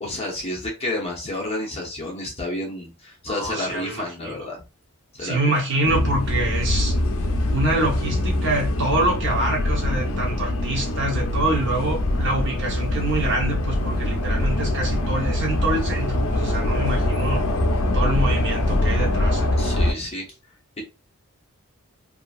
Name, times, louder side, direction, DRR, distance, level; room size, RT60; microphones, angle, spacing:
voice 1, 0.0-4.6 5.1-5.4 19.6-20.3, left 1 dB, 30° left, 0.8 m, -30 dB
voice 2, 3.3-4.4 5.2-6.9 7.5-17.4 17.9-19.5, right 2 dB, 55° right, 0.9 m, -26 dB
sound 1, 5.8-19.9, left 1 dB, 70° left, 0.5 m, -23 dB
2.8 x 2.5 x 2.3 m
head